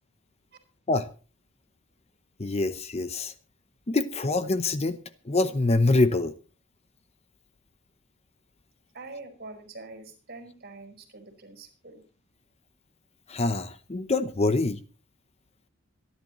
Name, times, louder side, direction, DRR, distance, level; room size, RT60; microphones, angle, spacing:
voice 1, 2.4-3.3 3.9-5.0 5.3-6.3 13.3-14.8, left 2 dB, 30° left, 0.8 m, -25 dB
voice 2, 8.9-12.0, right 3 dB, 50° right, 4.9 m, -44 dB
25.5 x 11.0 x 3.1 m
head